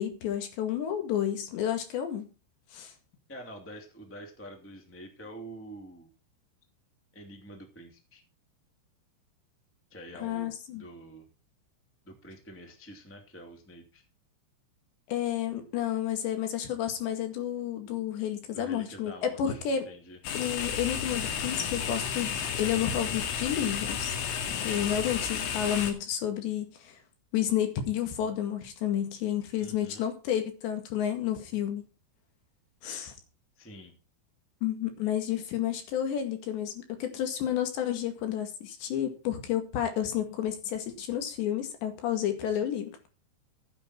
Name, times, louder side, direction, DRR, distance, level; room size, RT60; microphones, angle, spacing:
voice 1, 0.0-2.3 2.7-2.9 10.2-10.8 15.1-19.9 20.4-24.1 24.6-27.0 27.3-31.8 32.8-33.1 34.6-43.1, left 10 dB, 65° left, 7 dB, 4.1 m, -31 dB
voice 2, 3.3-6.1 7.1-8.2 9.9-11.2 12.0-14.0 18.5-20.2 24.5-24.9 29.6-30.0 33.6-33.9, right 1 dB, 5° left, 4 dB, 1.3 m, -47 dB
sound 1, 20.2-25.9, left 7 dB, 85° left, 4.6 m, -32 dB
15.0 x 9.2 x 4.4 m, 0.32 s
omnidirectional pair, 5.6 m